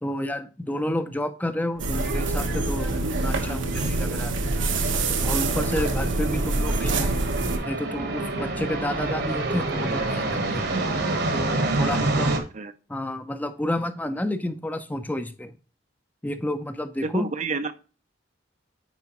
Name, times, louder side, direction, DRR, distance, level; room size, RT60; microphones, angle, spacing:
voice 1, 0.0-4.3 5.2-7.1 7.6-10.6 11.3-12.3 12.9-15.5 16.2-17.3, left 1 dB, 10° left, 9 dB, 0.6 m, -30 dB
sound 1, 1.8-12.4, right 2 dB, 60° right, 1.2 m, -29 dB
sound 2, 1.8-7.6, right 2 dB, 90° right, 1.3 m, -25 dB
voice 2, 12.2-12.7 17.0-17.7, right 4 dB, 40° right, 11 dB, 0.5 m, -30 dB
9.2 x 4.9 x 3.0 m, 0.36 s
head